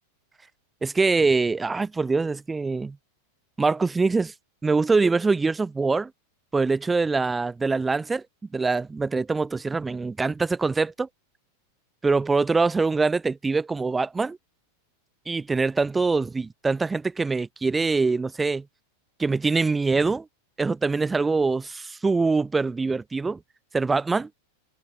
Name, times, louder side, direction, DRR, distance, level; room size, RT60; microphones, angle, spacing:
voice 1, 0.8-3.0 3.6-4.3 4.6-6.1 6.5-8.2 8.5-11.1 12.0-14.4 15.3-18.6 19.2-20.3 20.6-23.4 23.7-24.3, right 4 dB, 10° right, 0.4 m, -24 dB
figure-of-eight pair, 90°, 0 cm